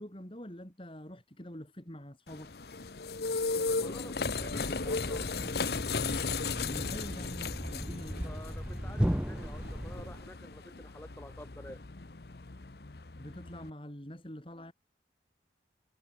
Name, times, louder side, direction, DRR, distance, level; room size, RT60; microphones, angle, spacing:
voice 1, 0.0-2.5 6.6-8.2 13.2-14.7, equal, 30° left, 4.0 m, -45 dB
sound 1, 2.3-13.7, left 4 dB, 65° left, 1.0 m, -36 dB
voice 2, 3.8-5.5 8.2-11.8, left 1 dB, 15° left, 7.8 m, -49 dB
Thump thud, 4.1-10.3, equal, 5° right, 0.7 m, -37 dB
head